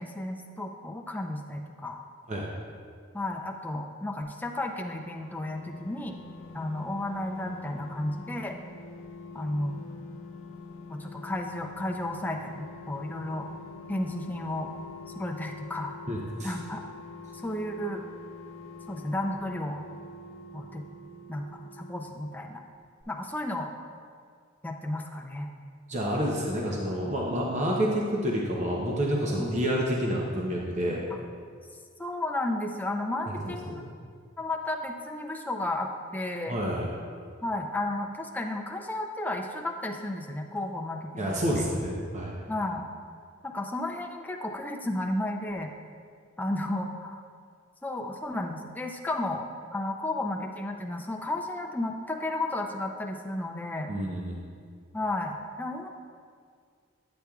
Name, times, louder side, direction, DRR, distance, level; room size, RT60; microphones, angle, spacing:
voice 1, 0.0-2.0 3.1-6.2 6.5-8.5 9.3-9.9 10.9-13.5 13.9-14.7 15.1-15.9 16.4-16.8 17.3-18.0 18.9-19.8 20.5-20.9 21.3-21.5 21.8-22.6 23.1-23.7 24.6-25.5 27.0-27.1 29.4-29.7 30.3-30.4 32.0-33.8 34.4-36.6 37.4-41.7 42.5-42.8 43.4-45.7 46.4-47.2 47.8-53.9 54.9-55.9, left 1 dB, 10° left, 2 dB, 0.4 m, -33 dB
sound 1, 4.4-22.7 23.0-23.1, left 3 dB, 80° left, 0.5 m, -45 dB
voice 2, 16.1-16.5 25.9-31.1 33.3-33.9 36.5-36.9 41.2-42.4 53.9-54.4, equal, 35° right, -2 dB, 0.7 m, -29 dB
8.7 x 8.0 x 2.3 m, 2.1 s
head